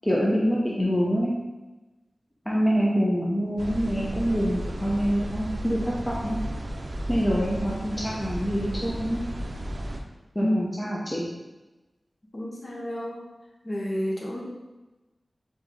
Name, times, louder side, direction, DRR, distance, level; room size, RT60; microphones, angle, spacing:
voice 1, 0.0-1.4 2.5-6.4 7.1-9.2 10.3-11.3, equal, 15° left, -5 dB, 0.8 m, -25 dB
sound 1, 3.6-10.0, equal, 60° right, 0.5 m, -33 dB
voice 2, 10.4-10.9 12.3-13.2 13.6-14.4, equal, 40° left, -3 dB, 1.1 m, -30 dB
4.0 x 3.2 x 3.8 m, 1.1 s
wide cardioid pair, 55°, 0 cm